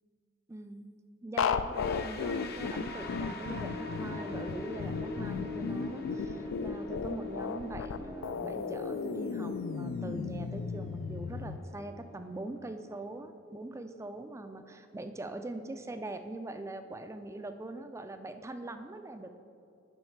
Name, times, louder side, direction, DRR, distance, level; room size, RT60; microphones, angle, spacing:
voice 1, 0.5-0.9 1.2-19.4, right 2 dB, 15° right, 8 dB, 0.3 m, -42 dB
sound 1, 1.4-11.6, left 5 dB, 65° left, 0.3 m, -35 dB
sound 2, 1.7-12.6, left 3 dB, 50° left, 0.7 m, -43 dB
10.5 x 5.6 x 4.5 m, 2.6 s
head